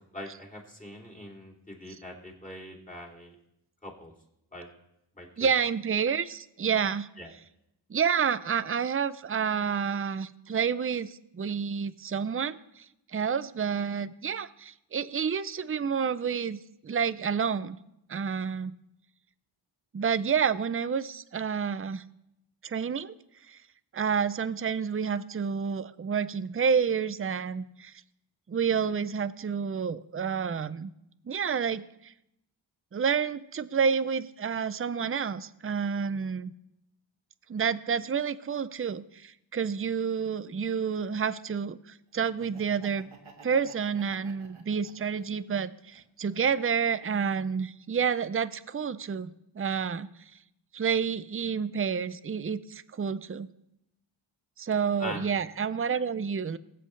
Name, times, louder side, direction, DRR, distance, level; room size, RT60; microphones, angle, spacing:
voice 1, 0.0-3.3 3.8-4.1 4.5-4.7 5.1-5.5 7.2-7.3 55.0-55.2, left 1 dB, 15° left, -1 dB, 3.0 m, -42 dB
voice 2, 5.4-7.1 7.9-12.9 13.1-17.8 18.1-18.8 19.9-22.0 22.6-23.1 23.5-23.6 23.9-27.9 28.5-30.9 31.3-32.1 32.9-36.5 37.5-43.1 43.4-50.1 50.7-53.5 54.6-56.6, right 6 dB, 30° right, 15 dB, 0.5 m, -29 dB
Laughter, 42.3-45.4 45.9-47.0, right 4 dB, 85° right, 1.7 m, -53 dB
23.0 x 7.8 x 3.2 m, 0.83 s
wide cardioid pair, 70°, 47 cm